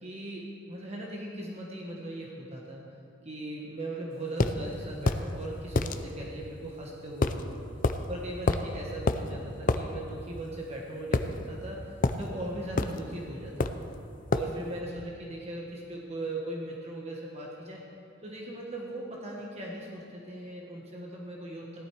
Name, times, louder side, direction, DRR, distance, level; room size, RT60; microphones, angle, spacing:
voice 1, 0.0-2.8 3.2-7.6 8.1-13.8 14.3-17.8 18.2-21.9, right 1 dB, 30° right, -2 dB, 1.3 m, -39 dB
sound 1, 4.4-4.6 5.1-5.3 5.8-6.0 7.2-7.4 7.8-8.0 8.5-8.7 9.1-9.2 9.7-9.8 11.1-11.7 12.0-12.2 12.8-13.0 13.6-13.9 14.3-14.5, left 3 dB, 40° left, 0.5 m, -26 dB
16.0 x 11.5 x 4.8 m, 2.6 s
head